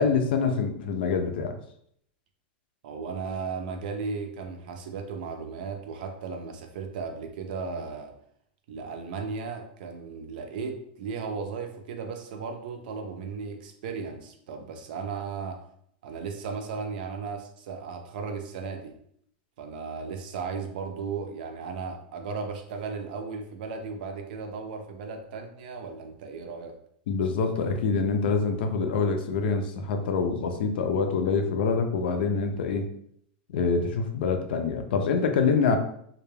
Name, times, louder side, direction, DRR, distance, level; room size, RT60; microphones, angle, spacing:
voice 1, 0.0-1.6 27.1-32.9 33.5-35.8, left 5 dB, 70° left, 6 dB, 0.4 m, -25 dB
voice 2, 2.8-8.1 8.7-15.6 16.0-19.0 19.6-26.8, right 5 dB, 55° right, 5 dB, 0.5 m, -35 dB
2.2 x 2.2 x 3.1 m, 0.68 s
supercardioid pair, 165°, 6 cm